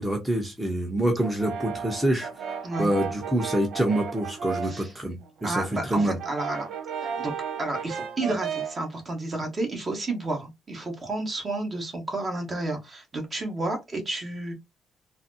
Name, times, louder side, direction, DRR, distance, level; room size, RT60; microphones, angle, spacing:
voice 1, 0.0-2.5 2.8-6.2, right 1 dB, 10° right, 0.8 m, -26 dB
Brass instrument, 1.2-4.9 5.2-8.9, right 6 dB, 75° right, 0.5 m, -34 dB
voice 2, 4.6-4.9 5.4-6.7 7.2-7.3 7.6-14.5, right 2 dB, 35° right, 1.2 m, -31 dB
3.9 x 2.0 x 2.7 m
cardioid pair, 100°, 0 cm